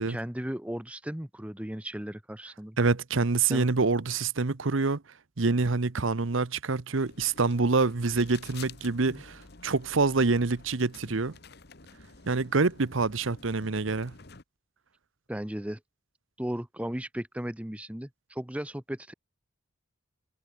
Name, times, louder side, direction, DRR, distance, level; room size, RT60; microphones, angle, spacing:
voice 1, 0.0-2.8 3.5-3.7 9.1-9.2 11.0-11.1 15.3-15.8 16.4-19.1, equal, 5° right, 0.8 m, -36 dB
voice 2, 2.8-5.0 5.4-11.3 12.3-14.1, right 3 dB, 70° right, 0.9 m, -26 dB
sound 1, 7.1-14.4, left 4 dB, 50° left, 1.7 m, -50 dB
head